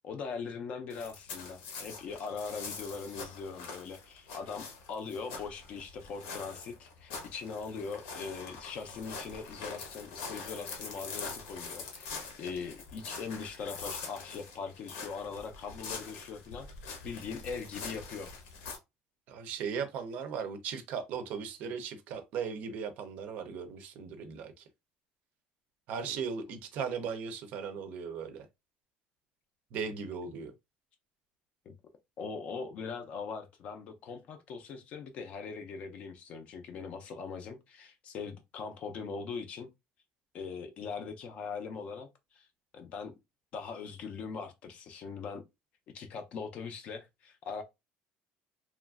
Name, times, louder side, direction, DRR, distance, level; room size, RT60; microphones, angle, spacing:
voice 1, 0.0-16.7 17.0-18.3 26.0-26.2 31.7-31.8 32.2-39.7 40.3-42.1 42.3-42.5 42.7-43.1 43.5-45.4 45.9-47.6, left 5 dB, 40° left, 0.4 m, -41 dB
sound 1, 0.9-18.8, left 4 dB, 80° left, 0.9 m, -44 dB
voice 2, 19.3-24.6 25.9-28.5 29.7-30.5, right 6 dB, 50° right, 0.5 m, -37 dB
2.9 x 2.4 x 2.3 m
cardioid pair, 180°, 3 cm